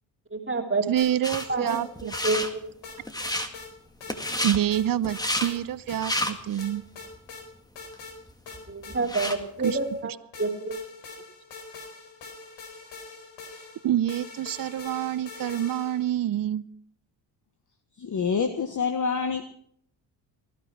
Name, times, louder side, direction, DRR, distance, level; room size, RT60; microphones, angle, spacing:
voice 1, 0.3-0.8 1.5-2.6 8.7-10.1 10.4-10.8, right 3 dB, 25° right, 2 dB, 2.9 m, -28 dB
voice 2, 0.9-2.1 4.4-6.8 9.6-9.8 13.8-16.6, right 11 dB, 45° right, 18 dB, 0.8 m, -27 dB
sound 1, 1.0-1.8 2.1-2.3 2.8-3.7 4.0-4.4 4.7-5.6 5.9-6.0 6.6-7.4 7.8-8.2 8.5-10.0 10.3-16.1, left 4 dB, 70° left, 4.8 m, -43 dB
sound 2, 1.2-1.5 2.0-2.5 3.0-3.5 4.1-4.6 5.0-5.5 5.9-6.6 7.1-7.2 7.9-8.0 8.3-9.4, left 1 dB, 10° left, 1.9 m, -30 dB
voice 3, 18.0-19.5, left 5 dB, 40° left, 8 dB, 1.4 m, -27 dB
18.5 x 12.0 x 5.8 m, 0.65 s
supercardioid pair, 65°, 46 cm